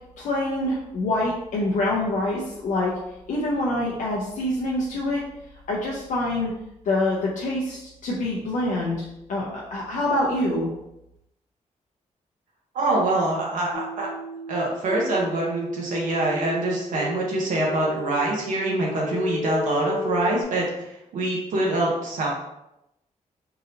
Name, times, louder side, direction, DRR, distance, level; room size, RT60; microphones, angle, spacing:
voice 1, 0.2-2.9 3.3-5.2 5.7-6.5 6.8-10.7, left 1 dB, 80° left, -4 dB, 0.7 m, -25 dB
voice 2, 12.7-14.1 14.5-22.3, right 2 dB, 90° right, -3 dB, 0.9 m, -25 dB
sound 1, 13.7-20.4, left 2 dB, 35° left, 0.5 m, -33 dB
3.9 x 2.8 x 2.6 m, 0.85 s
wide cardioid pair, 140°, 13 cm